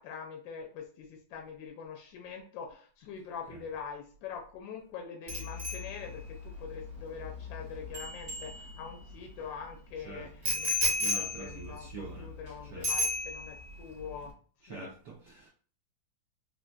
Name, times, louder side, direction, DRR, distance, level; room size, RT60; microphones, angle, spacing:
voice 1, 0.0-14.3 14.7-14.9, left 6 dB, 75° left, 1 dB, 1.3 m, -44 dB
Bicycle bell, 5.3-9.1 10.4-12.5 12.8-13.7 14.0-14.3, left 1 dB, 30° right, 0.8 m, -34 dB
voice 2, 10.0-10.5 11.0-12.3 12.7-12.9 14.6-15.5, right 5 dB, 65° right, -2 dB, 1.2 m, -45 dB
3.8 x 2.7 x 2.3 m, 0.43 s
omnidirectional pair, 2.1 m